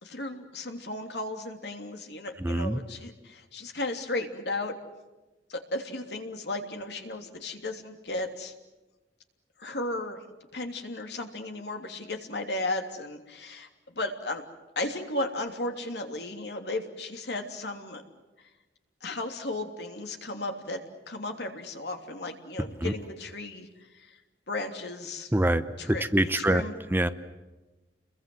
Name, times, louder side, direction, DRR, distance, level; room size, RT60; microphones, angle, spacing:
voice 1, 0.0-4.7 5.5-8.5 9.6-10.2 10.5-13.7 13.9-14.4 14.7-18.0 19.0-20.8 21.1-23.7 24.1-24.2 24.5-25.3 25.8-26.0 26.4-26.7, left 2 dB, 65° left, 4 dB, 3.1 m, -34 dB
voice 2, 2.4-2.8 22.8-22.9 25.3-26.6 26.9-27.1, right 1 dB, 10° right, 11 dB, 0.8 m, -25 dB
30.0 x 22.0 x 7.9 m, 1.1 s
head